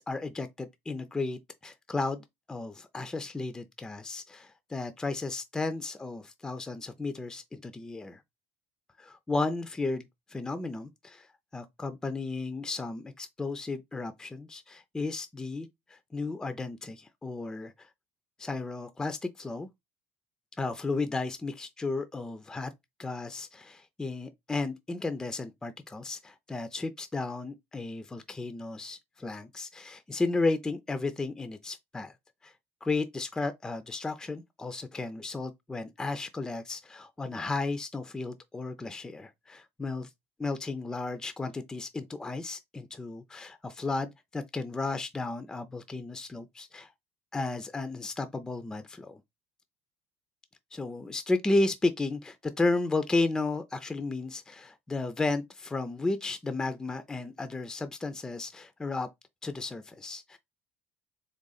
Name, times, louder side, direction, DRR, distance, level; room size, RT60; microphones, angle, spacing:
voice 1, 0.0-8.2 9.0-11.3 11.5-17.9 18.4-19.7 20.6-22.7 23.0-32.1 32.4-32.5 32.8-40.1 40.4-46.9 47.3-49.2 50.7-59.1 59.4-60.4, left 3 dB, 10° left, 0.4 m, -33 dB
3.7 x 3.4 x 3.9 m
cardioid pair, 125°, 5 cm